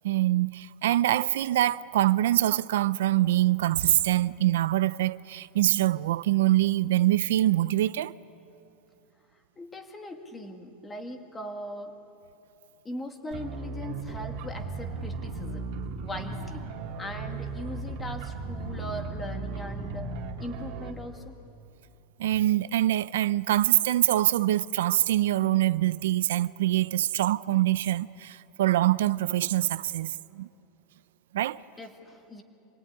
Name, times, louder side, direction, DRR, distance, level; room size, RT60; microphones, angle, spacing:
voice 1, 0.0-8.1 22.2-30.5 31.3-31.6, right 14 dB, 85° right, 0.5 m, -24 dB
voice 2, 9.3-11.9 12.8-15.7 16.0-16.7 17.0-20.1 20.4-21.4 31.8-32.4, left 1 dB, 10° left, 1.9 m, -40 dB
sound 1, 13.3-20.9, right 3 dB, 50° right, 2.7 m, -36 dB
26.0 x 21.0 x 9.8 m
supercardioid pair, 165°, 0 cm